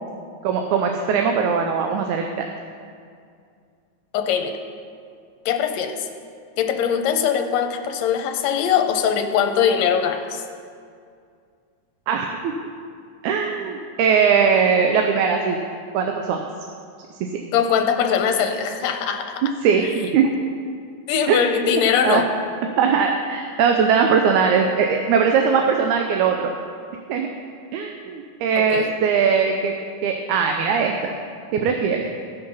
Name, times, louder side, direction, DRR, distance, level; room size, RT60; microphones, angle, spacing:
voice 1, 0.4-2.5 12.1-12.5 13.2-15.6 15.9-16.4 17.2-17.4 19.6-20.3 21.3-22.2 22.8-26.5 27.1-27.3 27.7-29.8 30.0-31.1 31.5-32.1, right 6 dB, 80° right, 3 dB, 2.0 m, -20 dB
voice 2, 4.1-4.5 5.5-6.1 6.6-10.4 17.5-19.4 21.1-22.2 28.6-28.9 31.9-32.0, left 8 dB, 75° left, 5 dB, 1.9 m, -21 dB
15.5 x 5.3 x 5.5 m, 2.3 s
omnidirectional pair, 3.4 m